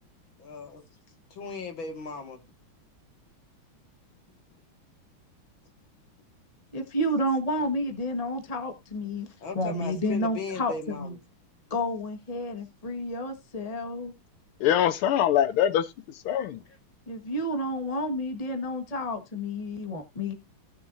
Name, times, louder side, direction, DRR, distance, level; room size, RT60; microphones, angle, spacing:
voice 1, 0.4-0.8 1.3-2.4 9.3-11.2 16.6-16.8, left 4 dB, 70° left, 2.5 m, -37 dB
voice 2, 6.7-9.3 9.5-11.2 11.7-14.1 17.1-20.3, left 1 dB, 20° left, 1.3 m, -30 dB
voice 3, 14.6-15.9 16.2-16.6, left 10 dB, 85° left, 1.6 m, -23 dB
17.0 x 6.3 x 2.6 m
omnidirectional pair, 2.3 m